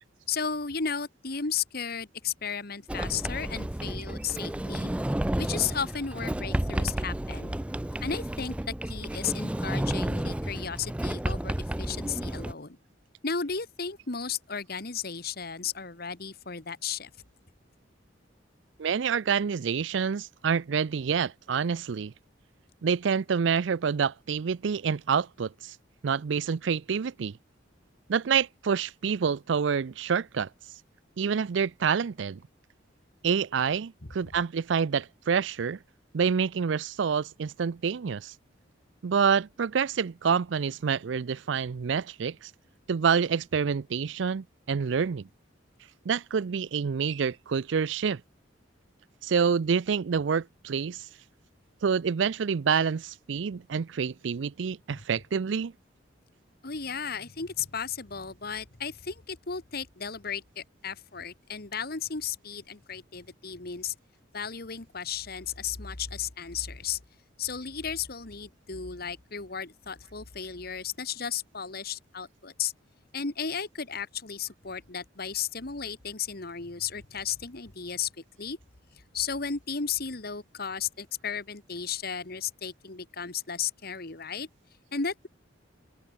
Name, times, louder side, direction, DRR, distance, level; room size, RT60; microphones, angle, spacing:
voice 1, 0.3-4.9 5.4-7.6 8.0-12.8 13.2-17.1 54.9-55.0 56.6-63.9 64.3-67.0 67.4-72.7 73.1-78.1 78.4-78.6 79.1-84.5 84.9-85.3, left 6 dB, 55° left, 1.7 m, -34 dB
Sliding door, 2.9-12.5, right 1 dB, 5° right, 0.3 m, -31 dB
voice 2, 18.8-22.1 22.8-25.7 26.0-27.3 28.1-30.5 31.2-32.4 33.2-35.8 36.1-38.3 39.0-42.5 42.9-45.3 46.1-48.2 49.2-51.1 51.8-55.7, right 6 dB, 70° right, 0.4 m, -27 dB
open air
head